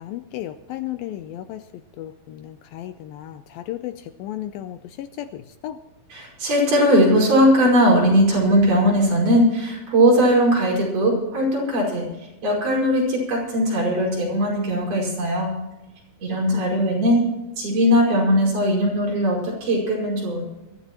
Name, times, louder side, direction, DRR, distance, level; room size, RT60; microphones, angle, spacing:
voice 1, 0.0-1.6 2.0-5.8 16.3-17.0, left 13 dB, 80° left, 10 dB, 2.2 m, -34 dB
voice 2, 6.1-12.1 12.4-15.5 16.2-17.2 17.6-20.4, equal, 55° right, -2 dB, 6.9 m, -19 dB
23.0 x 14.0 x 3.0 m, 1.0 s
omnidirectional pair, 4.5 m